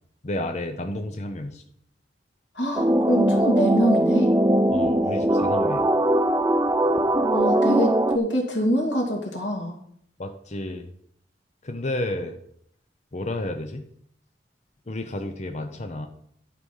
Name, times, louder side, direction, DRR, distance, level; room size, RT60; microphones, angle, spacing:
voice 1, 0.2-1.6 4.7-5.9 10.2-10.9 11.6-12.4 13.1-13.9 14.9-16.1, left 1 dB, 40° left, 6 dB, 0.7 m, -31 dB
voice 2, 2.5-4.3 7.3-9.8, equal, 90° left, 1 dB, 2.4 m, -24 dB
sound 1, 2.8-8.2, right 1 dB, 15° right, 0.4 m, -21 dB
11.0 x 5.1 x 5.5 m, 0.68 s
head